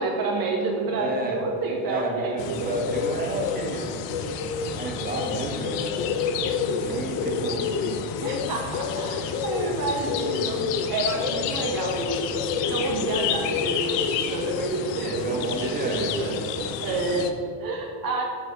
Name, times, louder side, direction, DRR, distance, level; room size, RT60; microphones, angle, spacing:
voice 1, 0.0-2.7 8.2-18.2, right 3 dB, 45° right, 1 dB, 1.5 m, -29 dB
voice 2, 0.9-1.5 1.9-5.9 6.4-8.1 15.0-16.3, right 2 dB, 20° right, 0 dB, 1.7 m, -31 dB
sound 1, 2.4-17.3, left 6 dB, 60° left, 0.9 m, -28 dB
8.9 x 4.9 x 7.0 m, 2.6 s
supercardioid pair, 100°, 48 cm